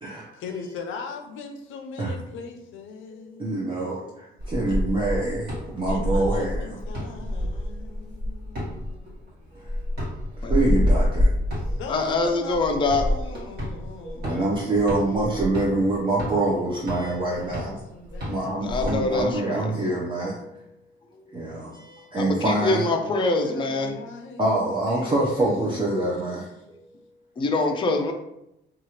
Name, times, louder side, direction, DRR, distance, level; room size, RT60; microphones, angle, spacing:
voice 1, 0.3-3.7 5.9-9.3 11.6-14.6 17.2-19.9 23.2-25.9, left 5 dB, 80° left, 4 dB, 0.5 m, -40 dB
voice 2, 3.4-6.8 7.4-7.7 9.5-9.8 10.5-11.3 11.7-11.8 14.0-17.8 18.1-20.6 21.3-22.9 24.4-26.5, right 2 dB, 25° right, -5 dB, 0.6 m, -26 dB
sound 1, 4.4-19.4, left 1 dB, 55° right, 1.4 m, -28 dB
voice 3, 11.9-13.1 18.6-19.7 21.3-21.4 22.2-23.9 27.4-28.1, left 3 dB, 25° left, 4 dB, 0.4 m, -24 dB
2.8 x 2.4 x 2.8 m, 0.85 s
cardioid pair, 90°, 20 cm